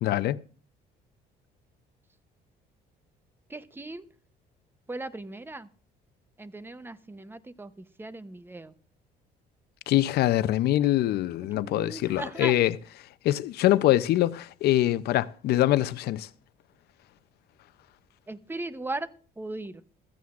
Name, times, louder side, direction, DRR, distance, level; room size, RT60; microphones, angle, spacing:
voice 1, 0.0-0.4 9.9-12.8 13.2-16.3, left 14 dB, 70° left, 0.6 m, -24 dB
voice 2, 3.5-4.0 4.9-5.7 6.4-7.7 8.0-8.7 11.5-12.5 18.3-19.1 19.4-19.8, right 2 dB, 15° right, 0.8 m, -37 dB
15.5 x 14.5 x 2.5 m
cardioid pair, 110°, 17 cm